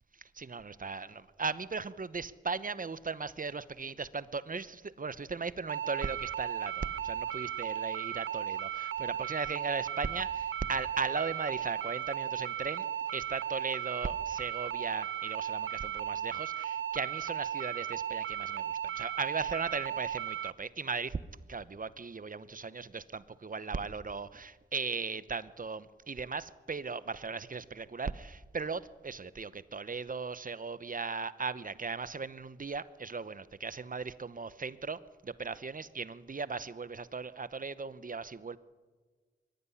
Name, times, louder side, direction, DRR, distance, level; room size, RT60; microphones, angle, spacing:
voice 1, 0.4-12.9 13.1-21.2 21.5-38.6, right 4 dB, 40° right, 15 dB, 0.9 m, -37 dB
sound 1, 5.7-20.5, right 10 dB, 80° right, 0.6 m, -36 dB
22.0 x 14.0 x 9.8 m, 1.5 s
cardioid pair, 60°, 20 cm